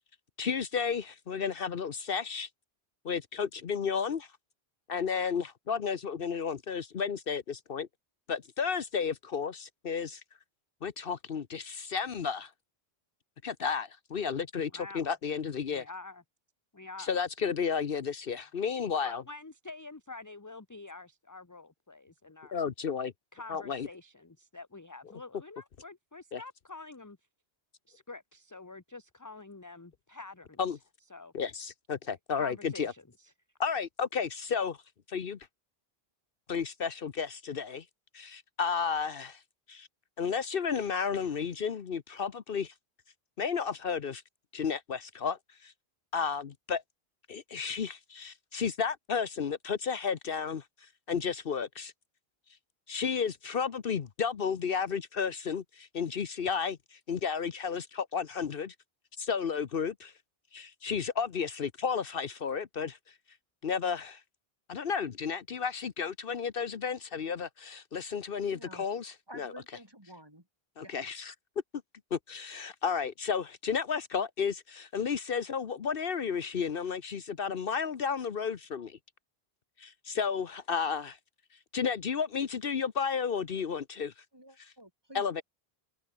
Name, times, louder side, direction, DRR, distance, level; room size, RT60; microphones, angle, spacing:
voice 1, 0.4-2.5 3.0-4.3 4.9-7.9 8.3-10.2 10.8-12.5 13.4-15.9 17.0-19.2 22.5-23.1 23.5-23.9 26.3-26.4 30.6-30.8 31.3-32.9 33.6-34.8 35.1-35.4 36.5-37.8 38.1-39.4 39.7-39.9 40.2-42.7 43.4-44.2 44.5-45.7 46.1-46.8 47.3-50.6 51.1-51.9 52.9-58.7 59.2-60.1 60.5-63.0 63.6-64.2 64.7-69.5 70.8-71.3 72.1-79.0 79.8-81.2 81.7-84.1 84.6-84.7 85.1-85.4, left 6 dB, 65° left, 1.1 m, -32 dB
voice 2, 14.7-15.1 15.7-16.2 16.7-17.1 19.0-22.6 23.3-27.2 27.9-30.6 31.1-31.3 32.3-33.3, left 3 dB, 20° left, 1.0 m, -47 dB
voice 3, 68.5-68.8 69.3-70.4 70.8-70.9 84.3-85.4, right 1 dB, 25° right, 4.5 m, -51 dB
open air
omnidirectional pair, 1.0 m